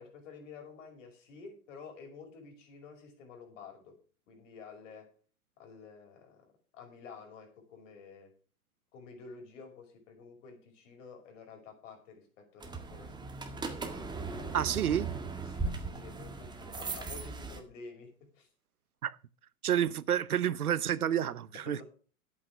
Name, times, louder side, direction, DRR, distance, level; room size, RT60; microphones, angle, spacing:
voice 1, 0.0-4.0 4.3-5.1 5.6-6.4 6.7-8.3 8.9-13.7 14.9-15.0 15.5-18.5 21.7-21.8, left 5 dB, 60° left, 5.7 m, -50 dB
sound 1, 12.6-17.6, right 4 dB, 10° right, 1.9 m, -38 dB
voice 2, 14.5-15.1 19.0-19.2 19.6-21.8, right 10 dB, 90° right, 0.8 m, -29 dB
11.5 x 8.7 x 6.2 m
hypercardioid pair, 115°, 43 cm